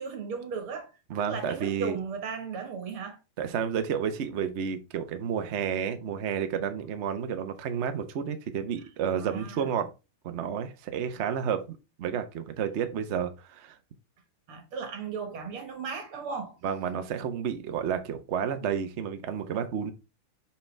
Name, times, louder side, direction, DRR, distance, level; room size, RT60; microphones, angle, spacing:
voice 1, 0.0-0.9 1.2-3.2 9.0-9.7 14.5-16.6, right 5 dB, 85° right, 2.3 m, -36 dB
voice 2, 1.1-2.0 3.4-9.9 10.2-13.8 16.6-19.9, right 7 dB, 65° right, 0.6 m, -31 dB
5.7 x 5.7 x 3.3 m
omnidirectional pair, 2.3 m